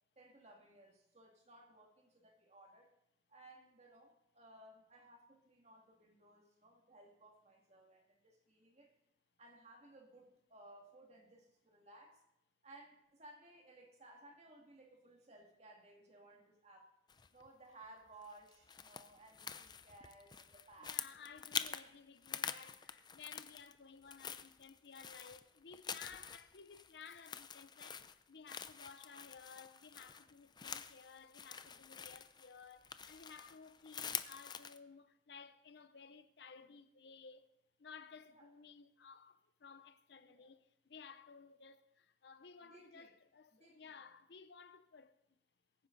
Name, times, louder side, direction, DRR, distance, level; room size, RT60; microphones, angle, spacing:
voice 1, 0.2-2.9 3.3-8.9 9.4-12.2 12.6-16.9 17.3-21.0 38.3-38.5 40.2-40.5 42.6-43.2 43.5-44.0, right 2 dB, 40° right, 2.2 m, -60 dB
sound 1, 17.1-17.5 18.2-21.9 22.2-23.8 24.0-34.8, left 7 dB, 25° left, 0.5 m, -46 dB
voice 2, 20.8-37.5 37.8-45.2, left 5 dB, 70° left, 0.6 m, -56 dB
22.5 x 9.8 x 3.9 m
head